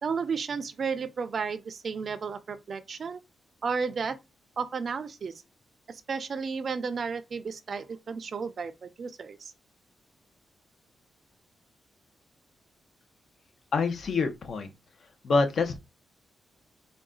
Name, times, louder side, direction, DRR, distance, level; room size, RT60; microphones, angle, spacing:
voice 1, 0.0-3.2 3.6-4.2 4.6-5.3 5.9-9.5, right 5 dB, 45° right, 0.4 m, -33 dB
voice 2, 13.7-14.7 15.2-15.8, left 4 dB, 50° left, 0.7 m, -26 dB
3.9 x 2.3 x 3.7 m
wide cardioid pair, 155°, 0 cm